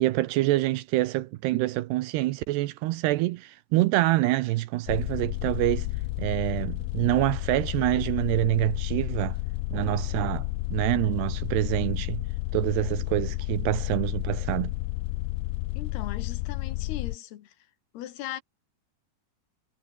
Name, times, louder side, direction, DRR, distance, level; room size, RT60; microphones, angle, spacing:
voice 1, 0.0-5.9 6.2-9.4 9.7-12.2 12.5-14.7, right 17 dB, 75° right, 2.7 m, -26 dB
sound 1, 4.9-17.2, left 19 dB, 85° left, 2.3 m, -31 dB
voice 2, 15.8-17.6 17.9-18.4, left 12 dB, 70° left, 3.2 m, -38 dB
omnidirectional pair, 5.1 m